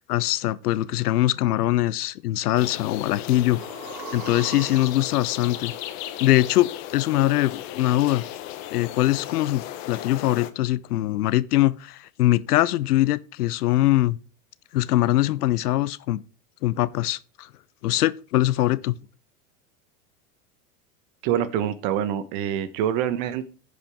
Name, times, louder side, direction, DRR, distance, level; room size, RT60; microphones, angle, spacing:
voice 1, 0.0-3.6 4.1-5.7 6.2-8.2 8.7-14.2 14.7-16.2 16.6-17.5 17.8-19.0, left 15 dB, 85° left, 0.6 m, -22 dB
sound 1, 2.6-10.5, left 12 dB, 60° left, 1.2 m, -36 dB
sound 2, 3.0-6.9 7.2-7.3, right 7 dB, 80° right, 1.8 m, -42 dB
voice 2, 21.2-23.5, right 10 dB, 50° right, 1.2 m, -25 dB
15.0 x 5.2 x 3.5 m
hypercardioid pair, 105°, 45 cm